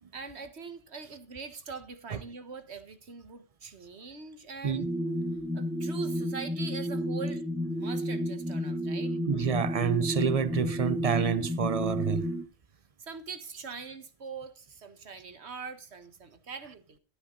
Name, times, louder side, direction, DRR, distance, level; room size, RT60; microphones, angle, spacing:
voice 1, 0.1-4.9 5.5-7.4 7.7-9.1 13.0-17.0, right 4 dB, 85° right, 1.7 m, -42 dB
sound 1, 4.7-12.4, equal, 5° right, 1.0 m, -32 dB
voice 2, 9.3-12.3, right 7 dB, 40° right, 0.7 m, -28 dB
13.0 x 8.5 x 3.8 m
omnidirectional pair, 1.1 m